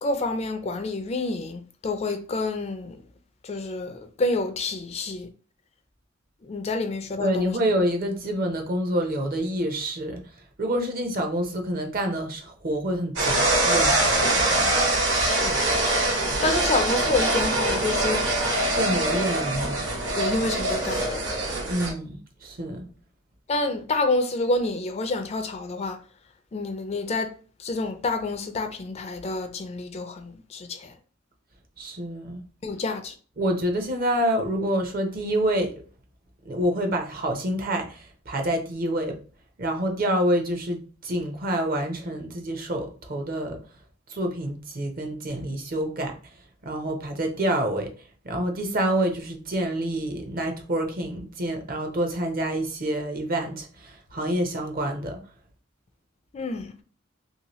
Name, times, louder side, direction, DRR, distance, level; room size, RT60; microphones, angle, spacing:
voice 1, 0.0-3.0 3.4-5.3 6.4-7.6 15.2-15.7 16.4-18.6 20.2-21.5 23.5-26.0 26.5-27.3 27.6-30.9 32.6-33.2 56.3-56.7, left 2 dB, 30° left, 0.4 m, -28 dB
voice 2, 7.2-10.3 10.6-14.7 18.7-19.9 21.7-22.9 31.8-32.4 33.4-35.8 36.4-39.2 39.6-43.6 44.1-46.2 46.6-47.9 48.2-55.2, right 1 dB, 45° right, 0.7 m, -27 dB
sound 1, 13.2-21.9, right 1 dB, 65° right, 1.2 m, -23 dB
3.0 x 2.8 x 3.0 m
head